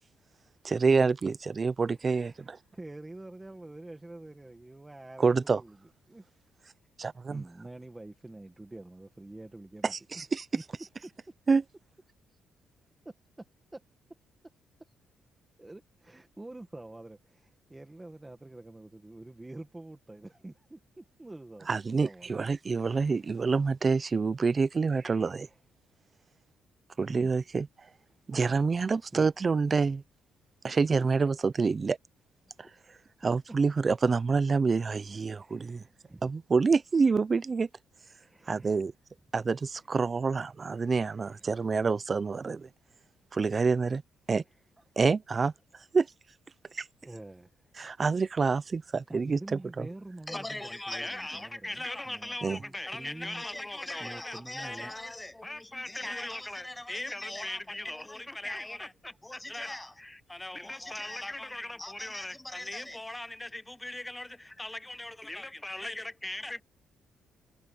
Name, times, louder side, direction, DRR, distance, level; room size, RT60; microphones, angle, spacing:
voice 1, 0.6-2.6 5.2-5.6 7.0-7.4 9.8-10.5 11.5-11.6 21.7-25.5 27.0-27.7 28.3-30.0 30.6-32.0 33.2-35.8 36.2-37.7 38.5-38.9 39.3-42.7 43.3-44.0 44.3-44.4 45.0-45.5 45.9-46.1 46.7-46.9 47.8-49.9 52.4-52.6, right 4 dB, 35° right, 0.6 m, -27 dB
voice 2, 1.9-5.8 6.1-6.3 7.3-10.3 10.5-10.6 11.0-11.1 13.1-13.2 15.6-22.6 22.9-23.2 25.4-25.6 27.0-27.3 29.1-29.3 32.5-32.6 35.3-36.3 38.2-38.8 39.9-40.0 40.8-41.5 47.0-47.7 49.1-53.4 54.0-54.9, right 2 dB, 15° right, 1.8 m, -47 dB
voice 3, 50.3-66.6, left 1 dB, 10° left, 0.4 m, -39 dB
cardioid pair, 90°, 0 cm